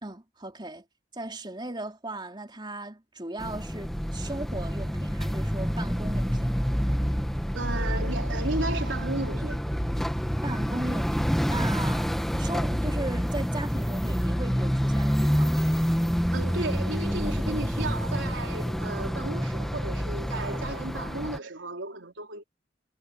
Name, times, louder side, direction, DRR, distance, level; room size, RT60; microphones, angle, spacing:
voice 1, 0.0-0.8 1.1-6.5 10.4-15.7, right 2 dB, 25° right, 3.8 m, -37 dB
sound 1, 3.4-21.4, equal, ahead, 1.5 m, -27 dB
voice 2, 7.5-9.6 16.3-22.4, right 2 dB, 85° right, 4.0 m, -34 dB
head